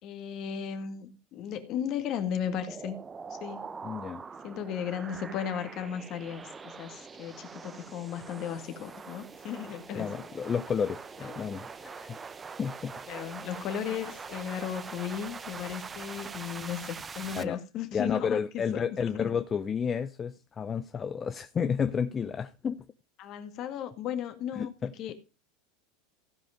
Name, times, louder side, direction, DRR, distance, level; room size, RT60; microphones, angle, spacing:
voice 1, 0.0-3.0 3.3-3.7 4.4-10.1 11.2-11.5 13.1-18.8 19.2-19.3 23.2-24.7 25.0-25.2, left 8 dB, 50° left, 1.9 m, -35 dB
sound 1, 2.7-17.4, right 5 dB, 25° right, 0.8 m, -43 dB
voice 2, 3.8-4.2 10.0-12.2 12.6-12.9 17.3-17.6 17.9-22.8 24.6-24.9, left 6 dB, 25° left, 0.6 m, -31 dB
15.5 x 5.3 x 5.0 m
hypercardioid pair, 100°, 0 cm